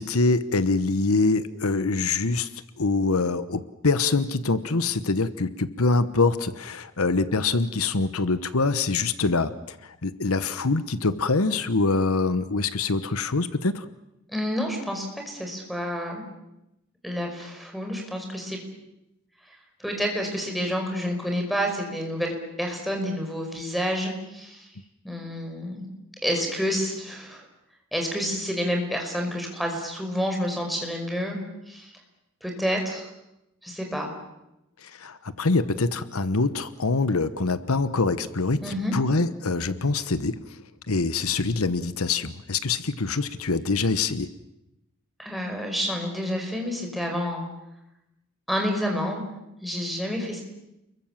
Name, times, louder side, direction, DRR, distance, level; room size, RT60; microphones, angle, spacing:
voice 1, 0.0-2.5 2.8-13.9 34.8-40.6 40.9-44.3, left 3 dB, 80° left, 13 dB, 1.1 m, -24 dB
voice 2, 14.3-16.2 17.0-18.6 19.8-24.7 25.0-25.9 26.2-27.4 27.9-31.4 31.7-31.9 32.4-33.1 33.6-34.1 38.6-39.0 45.2-47.4 48.5-49.3 49.6-50.4, equal, ahead, 1 dB, 5.4 m, -29 dB
29.5 x 22.5 x 7.4 m, 0.87 s
head